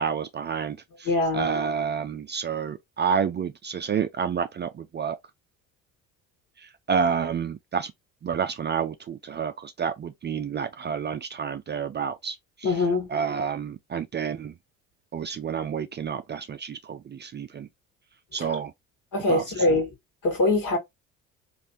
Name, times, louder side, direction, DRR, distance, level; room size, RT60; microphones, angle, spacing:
voice 1, 0.0-1.1 1.3-5.2 6.6-7.9 8.2-12.7 13.1-14.5 15.1-17.7 18.3-18.7 19.3-19.4 19.7-19.8, right 6 dB, 30° right, 0.5 m, -29 dB
voice 2, 1.1-1.5 12.6-13.1 18.4-18.5 19.1-19.9 20.2-20.8, left 2 dB, 55° left, 2.1 m, -23 dB
3.3 x 3.2 x 2.7 m
hypercardioid pair, 60°, 38 cm